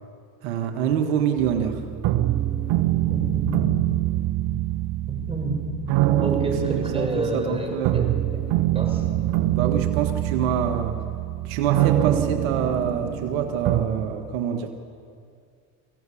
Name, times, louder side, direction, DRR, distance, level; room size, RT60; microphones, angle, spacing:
voice 1, 0.4-1.8 6.7-8.0 9.5-11.0 11.4-14.7, right 8 dB, 85° right, 5 dB, 1.8 m, -26 dB
sound 1, 1.4-13.8, right 13 dB, 70° right, 1.5 m, -24 dB
voice 2, 3.1-4.1 4.4-4.6 5.1-5.6 6.2-8.0 8.7-9.0, right 1 dB, 15° right, 1 dB, 6.2 m, -29 dB
23.5 x 16.0 x 8.6 m, 2.3 s
supercardioid pair, 95°, 40 cm